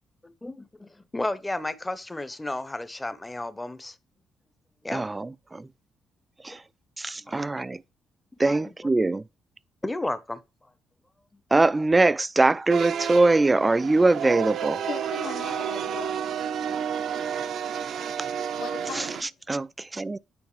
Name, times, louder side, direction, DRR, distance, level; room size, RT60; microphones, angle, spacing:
voice 1, 0.2-4.0 4.8-5.0 6.5-6.6 7.3-7.4 8.5-8.7 9.8-10.4, left 2 dB, 15° left, 0.8 m, -33 dB
voice 2, 4.9-5.7 6.4-6.6 7.0-7.8 8.4-9.2 11.5-14.8 18.2-18.3 18.9-19.1 19.5-20.2, right 2 dB, 20° right, 0.4 m, -22 dB
sound 1, 12.7-19.2, right 8 dB, 70° right, 0.8 m, -31 dB
voice 3, 14.9-16.2 18.6-19.3, left 6 dB, 70° left, 1.4 m, -37 dB
9.7 x 4.6 x 3.2 m
cardioid pair, 90°, 0 cm